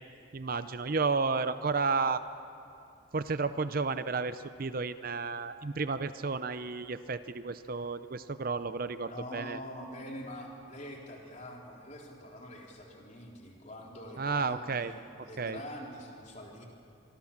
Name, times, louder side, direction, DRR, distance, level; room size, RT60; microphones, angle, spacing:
voice 1, 0.3-2.2 3.1-9.6 14.2-14.9 15.4-15.6, right 4 dB, 45° right, 12 dB, 0.6 m, -32 dB
voice 2, 9.1-16.7, equal, 35° left, -1 dB, 3.7 m, -45 dB
25.5 x 24.5 x 7.3 m, 2.6 s
head